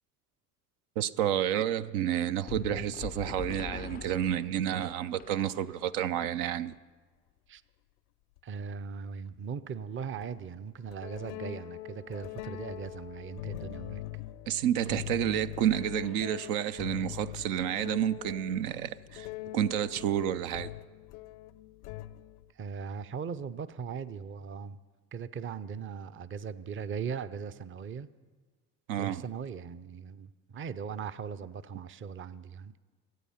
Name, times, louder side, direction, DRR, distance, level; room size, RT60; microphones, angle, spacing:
voice 1, 1.0-6.7 14.5-19.3 19.5-20.7 28.9-29.2, right 11 dB, 65° right, 0.6 m, -30 dB
sound 1, 2.5-6.0, left 10 dB, 25° left, 0.3 m, -43 dB
sound 2, 6.7-6.8 8.4-8.5 10.2-10.4 10.9-22.5, left 15 dB, 75° left, 0.6 m, -42 dB
voice 2, 8.4-14.0 22.5-24.8 25.1-28.1 29.0-32.7, right 6 dB, 25° right, 0.6 m, -39 dB
sound 3, 16.0-17.9 18.2-18.3, equal, 85° right, 1.4 m, -58 dB
22.5 x 8.5 x 5.7 m
hypercardioid pair, 55°, 45 cm